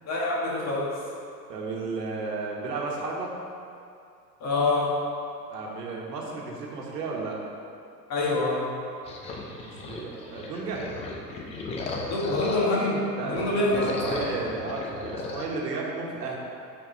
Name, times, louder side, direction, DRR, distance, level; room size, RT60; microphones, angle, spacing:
voice 1, 0.0-1.0 4.4-5.0 8.1-8.7 12.0-14.2, left 2 dB, 30° left, -4 dB, 1.5 m, -26 dB
voice 2, 1.5-3.3 5.5-7.4 9.6-10.9 13.2-16.4, right 3 dB, 75° right, -2 dB, 1.4 m, -33 dB
sound 1, 9.1-12.9 13.3-15.5, left 3 dB, 15° left, 0.3 m, -35 dB
5.9 x 4.6 x 4.4 m, 2.4 s
hypercardioid pair, 95°, 49 cm